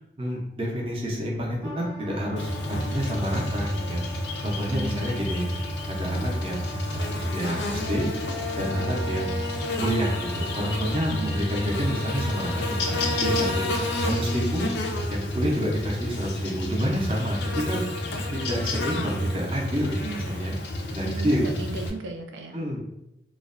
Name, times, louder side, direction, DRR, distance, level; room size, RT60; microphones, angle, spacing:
voice 1, 0.2-4.0 4.4-5.5 5.9-8.1 8.6-9.4 9.8-14.7 15.1-20.6 20.9-21.5 22.5-22.8, equal, 30° right, -1 dB, 0.5 m, -29 dB
Wind instrument woodwind instrument, 1.6-14.5, left 1 dB, 20° left, 0.5 m, -43 dB
Buzz, 2.4-21.9, left 1 dB, 75° left, 0.4 m, -29 dB
voice 2, 4.7-5.2 11.2-11.3 20.0-20.4 21.0-22.6, right 2 dB, 90° right, 4 dB, 0.4 m, -35 dB
2.4 x 2.1 x 2.4 m, 0.86 s
head